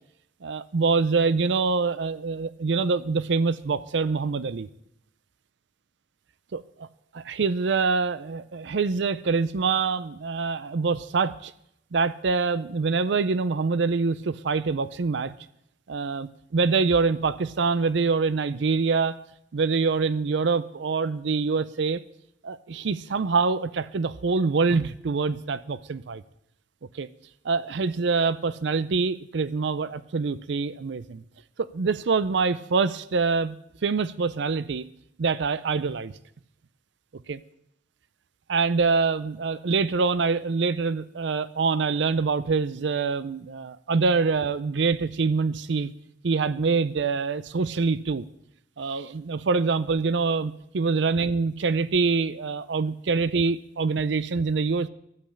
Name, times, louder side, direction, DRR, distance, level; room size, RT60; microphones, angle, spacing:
voice 1, 0.4-4.7 6.5-6.9 7.1-11.5 11.9-15.3 15.9-19.2 19.5-22.0 22.4-26.2 26.9-27.1 27.4-31.2 31.6-33.6 33.8-34.9 35.2-36.1 37.3-37.4 38.5-45.9 46.2-48.2 48.8-54.9, right 4 dB, 65° right, 16 dB, 0.5 m, -25 dB
12.0 x 7.8 x 8.5 m, 0.76 s
head